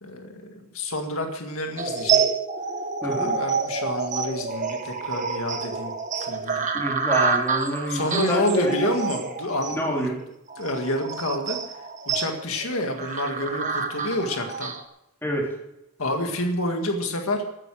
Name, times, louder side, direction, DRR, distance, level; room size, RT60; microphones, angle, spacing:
voice 1, 0.0-2.3 3.0-5.9 6.2-6.6 7.9-10.1 10.6-11.6 12.1-14.7 16.0-17.4, left 1 dB, 70° left, 3 dB, 1.9 m, -28 dB
sound 1, 1.8-14.8, right 5 dB, 35° right, 1.3 m, -28 dB
voice 2, 3.0-3.4 6.7-8.9 9.7-10.2 15.2-15.5, equal, 10° left, -3 dB, 3.5 m, -27 dB
14.5 x 9.7 x 6.3 m, 0.87 s
head